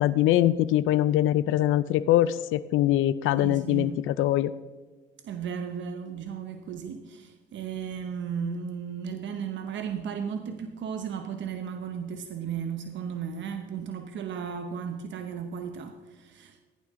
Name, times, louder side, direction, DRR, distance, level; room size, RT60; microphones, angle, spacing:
voice 1, 0.0-4.5, left 13 dB, 85° left, 0.4 m, -23 dB
voice 2, 3.4-4.0 5.2-16.6, right 7 dB, 70° right, 0.9 m, -35 dB
15.0 x 10.5 x 3.7 m
cardioid pair, 90°, 20 cm